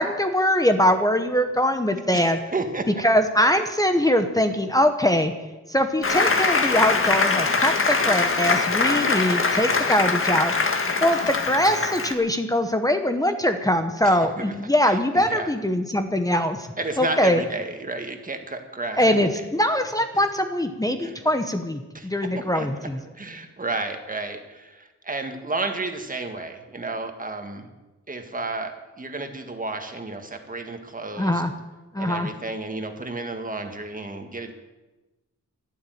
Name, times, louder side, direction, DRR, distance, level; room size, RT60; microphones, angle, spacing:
voice 1, 0.0-2.4 3.0-5.3 5.7-10.5 11.0-16.7 17.0-17.4 19.0-23.0 31.2-31.5 31.9-32.3, left 1 dB, 10° left, 7 dB, 1.0 m, -22 dB
voice 2, 2.1-2.9 14.0-14.6 14.8-15.5 16.8-19.4 21.0-21.1 21.9-22.1 22.5-22.9 23.1-27.7 28.1-31.4 32.0-34.5, right 3 dB, 25° right, 5 dB, 1.8 m, -32 dB
Applause, 6.0-12.1, left 4 dB, 45° left, 1.7 m, -22 dB
12.0 x 12.0 x 9.3 m, 1.1 s
wide cardioid pair, 145°, 31 cm